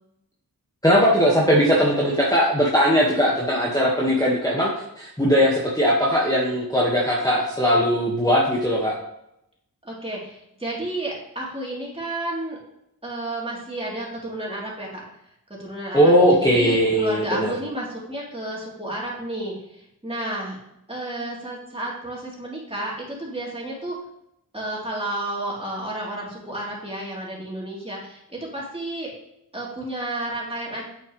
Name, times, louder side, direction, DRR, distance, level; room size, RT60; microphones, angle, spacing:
voice 1, 0.8-8.9 15.9-17.5, equal, 10° left, -4 dB, 1.7 m, -19 dB
voice 2, 9.8-12.6 13.0-15.0 15.5-16.1 16.4-20.6 20.9-24.0 24.5-29.1 29.5-30.9, right 1 dB, 15° right, -4 dB, 3.5 m, -31 dB
8.6 x 6.9 x 3.3 m, 0.80 s
wide cardioid pair, 75°, 35 cm